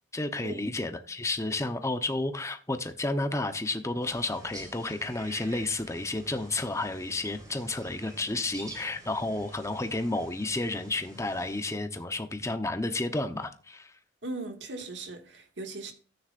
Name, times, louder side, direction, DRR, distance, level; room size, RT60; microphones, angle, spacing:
voice 1, 0.1-13.9, left 2 dB, 15° left, 1.0 m, -31 dB
sound 1, 4.0-11.6, right 1 dB, 20° right, 4.1 m, -48 dB
voice 2, 14.2-15.9, right 2 dB, 75° right, 2.1 m, -38 dB
13.5 x 9.4 x 2.6 m
head